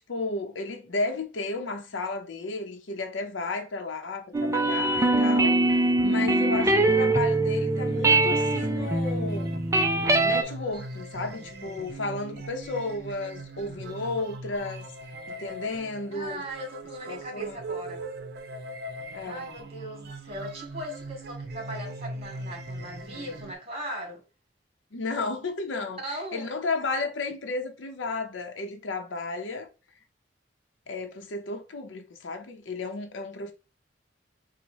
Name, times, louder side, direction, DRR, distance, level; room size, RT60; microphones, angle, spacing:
voice 1, 0.0-5.8 6.0-9.5 10.2-14.9 15.3-16.4 17.1-17.6 19.1-19.5 24.9-29.7 30.9-33.5, left 3 dB, 85° left, 0.7 m, -33 dB
sound 1, 4.3-10.4, right 2 dB, 15° right, 0.4 m, -23 dB
sound 2, 7.7-23.5, right 2 dB, 60° right, 0.7 m, -40 dB
voice 2, 16.1-18.0 19.2-24.2 25.8-26.6, equal, 35° right, 1.7 m, -38 dB
4.0 x 2.1 x 4.5 m
head